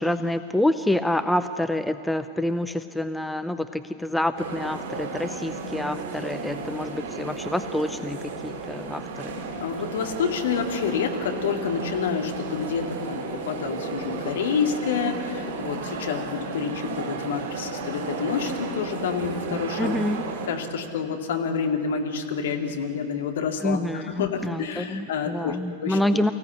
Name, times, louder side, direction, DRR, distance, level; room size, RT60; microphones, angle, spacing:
voice 1, 0.0-9.3 19.8-20.3 23.6-26.3, left 1 dB, 5° left, 11 dB, 0.6 m, -27 dB
sound 1, 4.4-20.5, right 3 dB, 55° right, 4.9 m, -34 dB
voice 2, 9.6-20.0 20.5-25.6 25.8-26.0, left 6 dB, 60° left, 3 dB, 2.3 m, -28 dB
24.0 x 15.5 x 8.3 m, 2.4 s
figure-of-eight pair, 90°, 0 cm